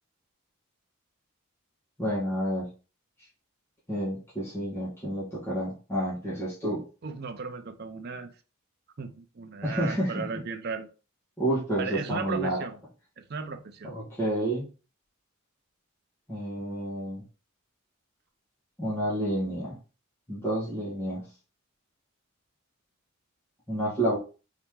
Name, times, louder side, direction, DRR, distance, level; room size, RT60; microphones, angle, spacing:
voice 1, 2.0-2.7 3.9-6.8 9.6-10.2 11.4-12.6 13.8-14.6 16.3-17.2 18.8-19.8 20.3-21.2 23.7-24.2, right 1 dB, 10° left, 1.8 m, -29 dB
voice 2, 7.0-8.3 9.0-10.9 11.8-12.8 13.2-13.9, right 5 dB, 50° right, 0.5 m, -36 dB
4.3 x 3.7 x 3.2 m
head